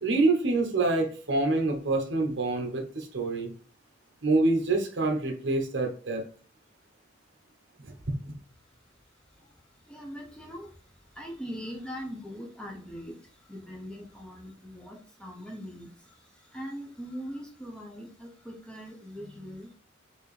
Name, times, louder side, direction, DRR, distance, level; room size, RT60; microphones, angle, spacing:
voice 1, 0.0-3.5 4.2-6.2 7.8-7.9 8.3-8.4, right 2 dB, 65° right, 0.9 m, -26 dB
voice 2, 9.8-19.8, equal, 5° left, 0.6 m, -41 dB
4.5 x 2.7 x 3.2 m
head